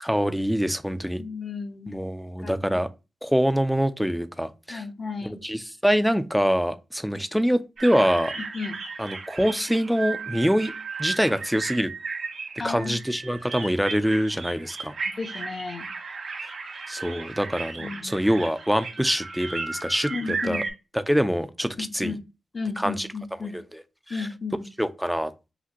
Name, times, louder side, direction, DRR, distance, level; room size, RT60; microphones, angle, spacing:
voice 1, 0.0-1.2 1.9-2.9 3.2-4.8 5.4-8.3 9.0-10.7 11.0-11.9 12.6-14.9 16.9-20.1 20.4-20.6 21.1-22.2 22.8-23.1 23.5-23.6 24.2-24.3 24.8-25.3, equal, ahead, 0.4 m, -24 dB
voice 2, 1.2-1.9 2.4-2.8 4.7-5.4 8.4-8.8 12.6-13.0 15.1-15.9 17.8-18.3 20.1-20.6 21.7-22.2 22.5-23.6 24.1-24.7, left 4 dB, 40° left, 0.6 m, -34 dB
sound 1, 7.8-20.7, right 4 dB, 85° right, 1.7 m, -35 dB
5.8 x 2.5 x 2.9 m
wide cardioid pair, 145°, 0 cm